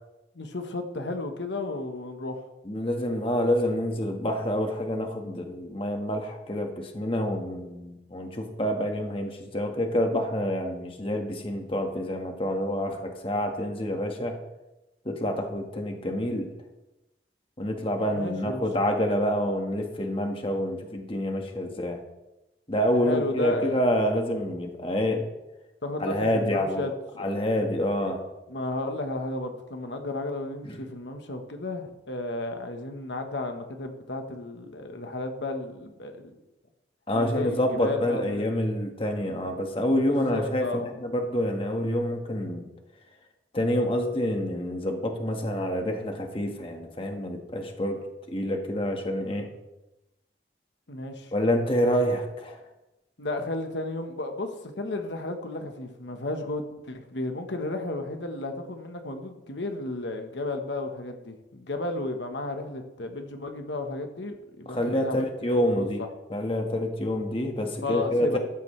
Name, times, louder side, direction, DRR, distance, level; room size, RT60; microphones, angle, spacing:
voice 1, 0.3-2.5 18.1-18.6 22.9-23.8 25.8-27.3 28.5-36.3 37.1-38.5 40.1-40.9 50.9-51.3 53.2-66.1 67.8-68.4, left 2 dB, 80° left, 5 dB, 1.3 m, -33 dB
voice 2, 2.6-14.4 15.0-16.5 17.6-22.0 22.7-25.3 26.0-26.8 27.2-28.2 37.1-42.7 43.5-48.0 48.3-49.5 51.3-52.6 64.7-66.0 66.3-68.4, equal, 30° left, 3 dB, 1.5 m, -27 dB
14.5 x 12.5 x 3.3 m, 0.98 s
head